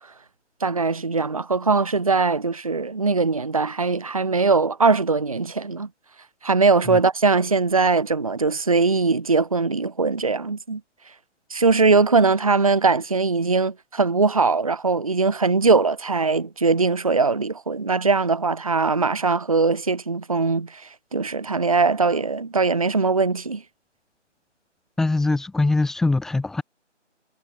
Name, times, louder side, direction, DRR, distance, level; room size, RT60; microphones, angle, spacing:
voice 1, 0.6-5.9 6.4-10.8 11.5-23.6, right 4 dB, 30° right, 1.4 m, -21 dB
voice 2, 25.0-26.6, left 2 dB, ahead, 5.2 m, -22 dB
figure-of-eight pair, 165°, 37 cm